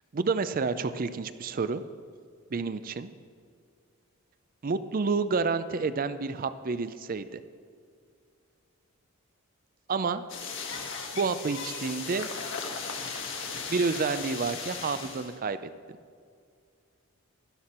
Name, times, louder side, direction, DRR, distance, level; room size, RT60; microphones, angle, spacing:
voice 1, 0.1-1.8 2.5-3.1 4.6-7.4 9.9-10.2 11.1-12.3 13.7-15.7, right 4 dB, 40° right, 12 dB, 0.5 m, -29 dB
sound 1, 10.3-15.4, left 5 dB, 60° left, 1.5 m, -37 dB
12.5 x 11.5 x 4.3 m, 2.2 s
head